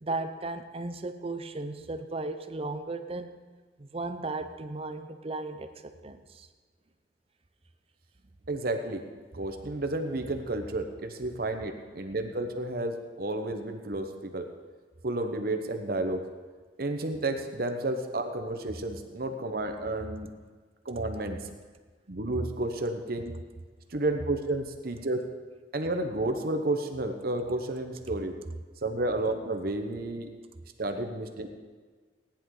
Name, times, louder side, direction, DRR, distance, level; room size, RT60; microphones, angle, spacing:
voice 1, 0.0-3.4 3.8-6.5 9.4-9.5, right 2 dB, 35° right, 8 dB, 0.7 m, -36 dB
voice 2, 8.5-9.0 9.3-14.5 15.0-16.2 16.8-20.3 20.8-21.4 22.1-23.3 23.9-25.2 25.7-28.3 28.8-30.3 30.8-31.5, right 2 dB, 55° right, 5 dB, 1.0 m, -31 dB
17.0 x 10.0 x 3.9 m, 1.4 s
head